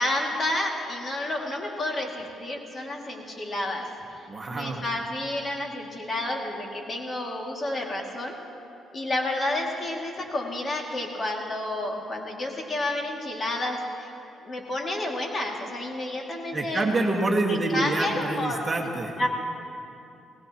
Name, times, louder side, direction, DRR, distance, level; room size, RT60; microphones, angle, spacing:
voice 1, 0.0-3.8 4.5-8.3 8.9-14.1 14.4-17.0 17.5-18.6 19.2-19.3, left 1 dB, 35° left, 0 dB, 2.3 m, -30 dB
voice 2, 4.3-4.8 16.5-19.1, right 2 dB, 25° right, -1 dB, 1.9 m, -26 dB
23.0 x 18.5 x 3.0 m, 2.7 s
cardioid pair, 90°, 0 cm